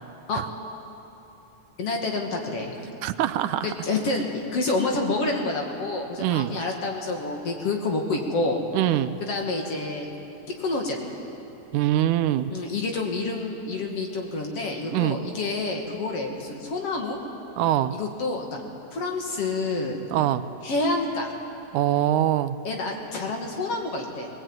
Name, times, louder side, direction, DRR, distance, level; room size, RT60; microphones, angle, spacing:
voice 1, 1.8-2.7 3.6-4.3 4.5-8.6 9.2-10.1 10.6-11.1 12.5-17.2 17.9-18.6 18.9-20.0 20.6-21.3 22.6-24.3, left 3 dB, 50° left, 1 dB, 3.0 m, -28 dB
voice 2, 3.0-3.7 6.2-6.5 8.7-9.2 11.7-12.5 14.9-15.2 17.6-17.9 20.1-20.5 21.7-22.6, right 12 dB, 80° right, 12 dB, 2.1 m, -23 dB
22.5 x 19.0 x 9.0 m, 3.0 s
omnidirectional pair, 3.5 m